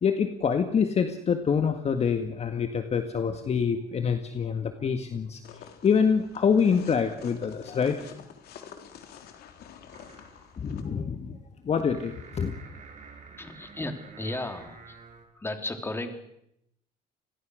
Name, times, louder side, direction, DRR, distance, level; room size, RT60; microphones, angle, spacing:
voice 1, 0.0-5.4 5.8-8.1 10.6-11.4 11.7-12.5, left 6 dB, 40° left, 7 dB, 1.8 m, -26 dB
sound 1, 5.4-10.8, left 8 dB, 70° left, 3.7 m, -48 dB
sound 2, 9.9-15.2, right 5 dB, 45° right, 6.2 m, -50 dB
voice 2, 13.4-15.0 15.3-16.2, left 2 dB, 15° left, 6 dB, 3.4 m, -35 dB
27.5 x 21.0 x 6.5 m, 0.79 s
cardioid pair, 110°, 17 cm